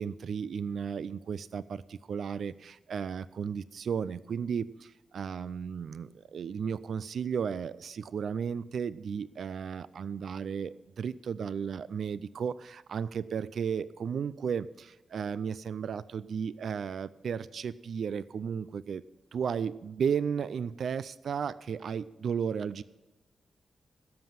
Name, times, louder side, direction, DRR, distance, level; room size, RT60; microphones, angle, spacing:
voice 1, 0.0-19.0 19.3-22.8, right 7 dB, 65° right, 17 dB, 0.3 m, -34 dB
16.5 x 7.6 x 5.8 m, 1.1 s
wide cardioid pair, 165°, 0 cm